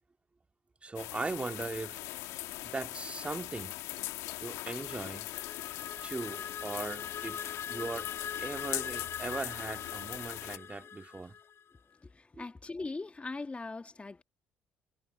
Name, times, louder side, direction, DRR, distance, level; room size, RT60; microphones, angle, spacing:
voice 1, 0.8-2.0 2.6-3.8 4.4-5.3 6.0-8.1 8.4-11.4 12.4-12.5, right 3 dB, 25° right, 2.0 m, -39 dB
sound 1, 1.0-10.6, left 16 dB, 75° left, 1.7 m, -41 dB
sound 2, 4.6-11.7, left 8 dB, 50° left, 6.7 m, -43 dB
voice 2, 12.0-14.2, left 3 dB, 25° left, 1.8 m, -40 dB
hypercardioid pair, 60°, 5 cm